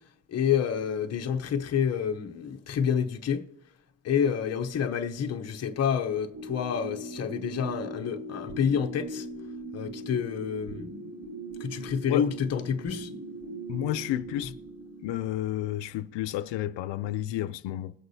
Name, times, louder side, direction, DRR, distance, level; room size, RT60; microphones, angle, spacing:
voice 1, 0.3-3.4 4.0-9.3 9.7-10.9 11.6-13.1, left 7 dB, 35° left, 0.7 m, -28 dB
sound 1, 6.3-15.0, right 1 dB, 55° right, 3.9 m, -40 dB
voice 2, 13.7-14.5 15.0-17.9, left 13 dB, 85° left, 0.5 m, -31 dB
21.0 x 8.0 x 2.7 m
cardioid pair, 175°, 43 cm